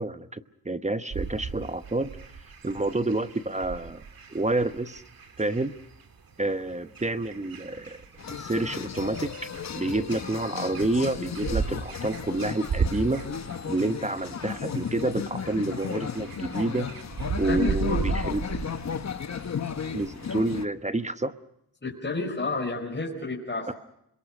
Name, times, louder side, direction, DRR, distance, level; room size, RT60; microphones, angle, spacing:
voice 1, 0.0-2.1 2.6-4.0 4.3-5.0 5.4-5.7 6.4-8.0 8.3-9.3 9.8-13.2 13.7-16.9 17.4-18.4 19.9-21.3 23.7-23.8, right 2 dB, 20° right, 12 dB, 0.9 m, -28 dB
sound 1, 1.1-20.6, right 5 dB, 60° right, 2.7 m, -37 dB
sound 2, 8.2-20.7, left 7 dB, 45° left, 1.2 m, -34 dB
voice 2, 17.5-18.0 21.8-23.7, left 3 dB, 30° left, -1 dB, 4.8 m, -30 dB
27.0 x 22.5 x 6.0 m, 0.80 s
cardioid pair, 60°, 39 cm